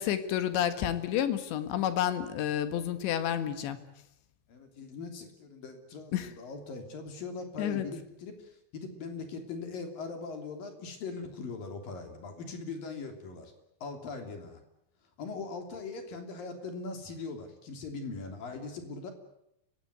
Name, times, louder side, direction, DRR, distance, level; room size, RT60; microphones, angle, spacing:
voice 1, 0.0-3.8 6.1-6.3 7.6-7.9, left 10 dB, 85° left, 11 dB, 3.9 m, -30 dB
voice 2, 4.5-13.5 13.8-14.6 15.2-19.1, left 4 dB, 55° left, 6 dB, 4.6 m, -40 dB
30.0 x 16.5 x 9.5 m, 0.81 s
omnidirectional pair, 5.0 m